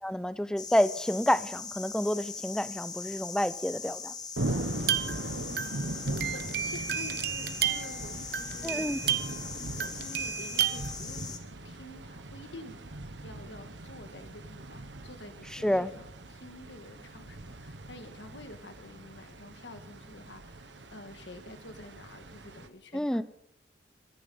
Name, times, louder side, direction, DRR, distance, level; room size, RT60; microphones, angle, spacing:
voice 1, 0.0-4.1 8.6-9.0 15.5-15.9 22.9-23.2, equal, 5° left, 15 dB, 0.5 m, -29 dB
sound 1, 0.6-11.4, left 5 dB, 20° left, 1.5 m, -41 dB
voice 2, 4.4-4.9 5.2-11.4 11.6-12.8 13.2-23.2, left 1 dB, 75° left, 7 dB, 1.7 m, -49 dB
sound 2, 4.4-22.7, right 1 dB, 75° right, 1.4 m, -40 dB
sound 3, 4.8-9.5 9.8-10.9, right 10 dB, 60° right, 1.0 m, -32 dB
23.5 x 10.5 x 5.5 m, 0.74 s
head